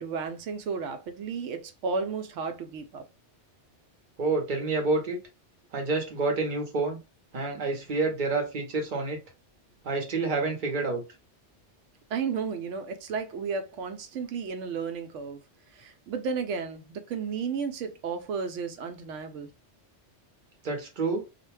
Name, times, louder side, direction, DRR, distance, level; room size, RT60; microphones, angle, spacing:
voice 1, 0.0-3.0 12.1-15.4 15.7-19.5, right 5 dB, 85° right, 0.9 m, -33 dB
voice 2, 4.2-5.2 5.7-7.0 7.3-9.2 9.8-11.0 20.6-21.2, right 3 dB, 45° right, 0.9 m, -28 dB
2.4 x 2.1 x 3.1 m
omnidirectional pair, 1.2 m